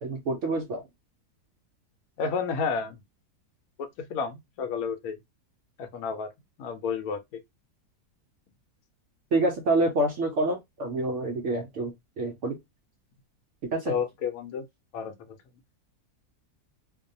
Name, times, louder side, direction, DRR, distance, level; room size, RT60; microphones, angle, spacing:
voice 1, 0.0-0.8 9.3-12.6 13.7-13.9, right 2 dB, 70° right, 0.7 m, -27 dB
voice 2, 2.2-3.0 3.8-5.2 5.8-6.3 6.6-7.4 13.9-14.7 14.9-15.1, left 5 dB, 70° left, 1.0 m, -31 dB
2.6 x 2.1 x 2.6 m
omnidirectional pair, 1.7 m